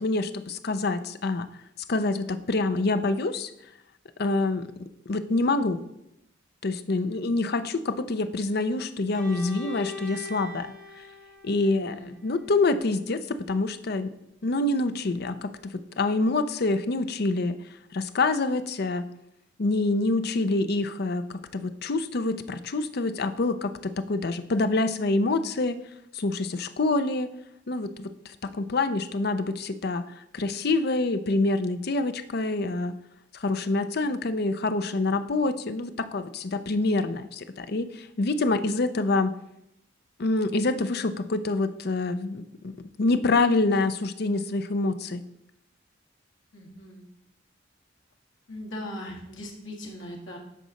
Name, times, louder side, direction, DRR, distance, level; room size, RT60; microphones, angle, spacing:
voice 1, 0.0-1.5 1.9-3.5 4.2-5.8 6.6-11.0 11.4-14.1 14.4-17.6 17.9-19.1 19.6-25.8 26.1-27.3 27.7-32.9 33.3-39.3 40.2-45.2, left 2 dB, 55° left, 11 dB, 0.6 m, -26 dB
voice 2, 6.9-7.2 7.5-7.7 11.6-12.1 46.5-47.1 48.5-50.4, left 1 dB, 80° left, 0 dB, 2.0 m, -40 dB
Bowed string instrument, 9.1-13.0, left 3 dB, ahead, 2.6 m, -42 dB
10.0 x 4.1 x 6.4 m, 0.83 s
head